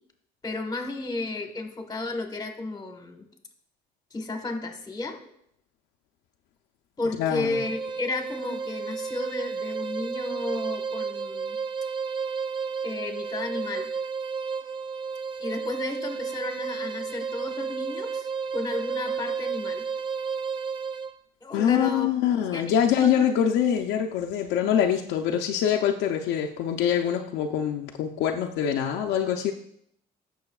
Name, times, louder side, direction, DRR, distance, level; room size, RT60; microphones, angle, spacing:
voice 1, 0.4-3.3 4.1-5.2 7.0-11.6 12.8-13.9 15.4-18.3 18.5-19.8 21.4-22.1 22.5-23.3, left 2 dB, 25° left, 4 dB, 1.4 m, -33 dB
voice 2, 7.2-7.6 21.5-29.5, left 9 dB, 85° left, 2 dB, 0.6 m, -24 dB
sound 1, 7.5-21.2, right 5 dB, 30° right, 0.4 m, -32 dB
15.0 x 6.2 x 2.4 m, 0.70 s
cardioid pair, 110°, 17 cm